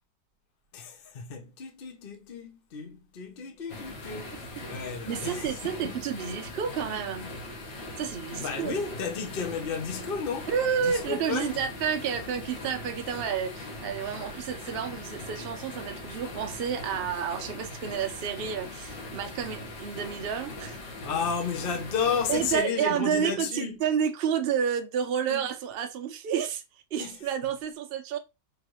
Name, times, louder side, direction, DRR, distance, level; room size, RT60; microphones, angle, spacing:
voice 1, 0.7-6.0 8.4-10.5 10.8-11.6 21.0-23.8 25.3-25.4 27.0-27.2, left 6 dB, 45° left, 0.7 m, -33 dB
sound 1, 3.7-22.6, left 2 dB, 85° left, 1.9 m, -41 dB
voice 2, 5.1-7.3 8.0-8.7 10.5-20.8 22.3-28.2, right 8 dB, 70° right, 0.5 m, -30 dB
4.9 x 3.2 x 3.0 m
omnidirectional pair, 2.0 m